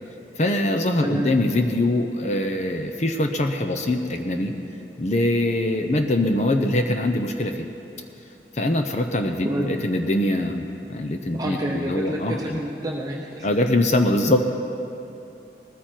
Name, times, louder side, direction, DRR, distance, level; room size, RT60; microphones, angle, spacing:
voice 1, 0.4-4.5 5.0-7.7 8.5-12.6 13.4-14.4, left 1 dB, 40° left, 5 dB, 0.7 m, -23 dB
voice 2, 1.0-1.4 9.4-9.7 11.3-13.5, right 1 dB, 20° right, -2 dB, 0.8 m, -28 dB
20.0 x 14.0 x 4.5 m, 2.9 s
head